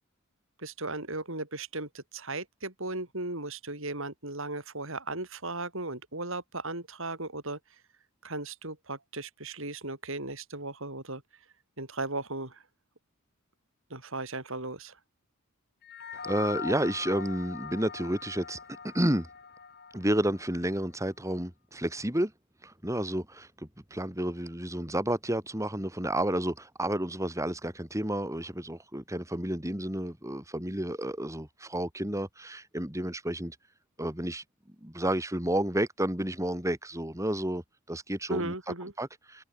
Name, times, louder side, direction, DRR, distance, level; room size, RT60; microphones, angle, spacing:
voice 1, 0.6-7.6 8.2-11.2 11.8-12.6 13.9-14.9 38.3-38.9, right 2 dB, 60° right, 7.5 m, -36 dB
sound 1, 15.8-20.5, left 6 dB, 50° left, 5.0 m, -41 dB
voice 2, 16.2-18.6 18.8-19.3 19.9-22.3 22.6-33.6 34.0-34.4 34.8-37.6 37.9-38.5 39.0-39.4, right 1 dB, 15° right, 3.8 m, -31 dB
head